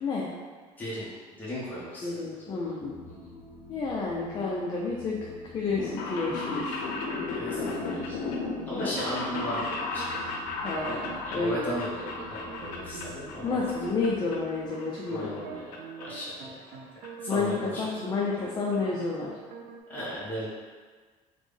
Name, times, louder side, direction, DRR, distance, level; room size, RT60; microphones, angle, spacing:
voice 1, 0.0-0.3 2.0-3.0 3.7-5.2 5.5-6.8 8.7-8.9 10.5-11.6 13.4-15.3 17.3-19.3, left 4 dB, 30° left, -4 dB, 0.4 m, -30 dB
voice 2, 0.8-1.1 1.4-2.7 3.1-3.3 7.4-8.2 8.7-10.2 11.3-13.6 15.1-16.6 17.0-18.0 19.9-20.5, equal, 10° left, -9 dB, 0.9 m, -36 dB
sound 1, 2.8-14.7, left 2 dB, 25° right, 0.6 m, -48 dB
sound 2, 5.6-13.4 13.7-14.4 14.7-15.8 16.0-16.1 17.0-17.1 17.3-17.4 17.7-17.8 18.1-18.3 18.7-18.8 19.0-19.1, left 3 dB, 85° left, 0.5 m, -35 dB
sound 3, 7.6-18.2 18.4-19.8, right 5 dB, 70° right, 0.4 m, -45 dB
3.3 x 2.1 x 3.4 m, 1.5 s
cardioid pair, 140°, 14 cm